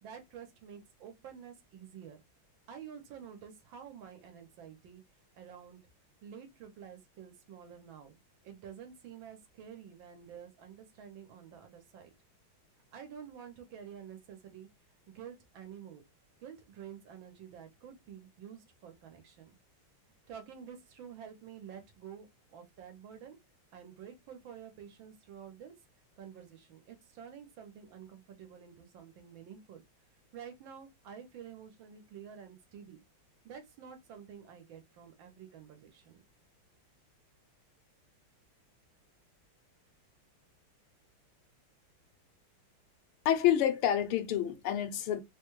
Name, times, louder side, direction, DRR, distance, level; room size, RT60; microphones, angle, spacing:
voice 1, 0.0-2.2 2.7-5.0 5.3-5.8 6.2-12.1 12.9-14.7 15.1-16.0 16.4-19.6 20.3-22.3 22.5-23.4 23.7-25.7 26.2-29.8 30.3-33.0 33.4-36.2, right 8 dB, 70° right, 1.6 m, -49 dB
voice 2, 43.2-45.2, left 10 dB, 85° left, 1.6 m, -28 dB
4.0 x 2.2 x 3.0 m
omnidirectional pair, 2.3 m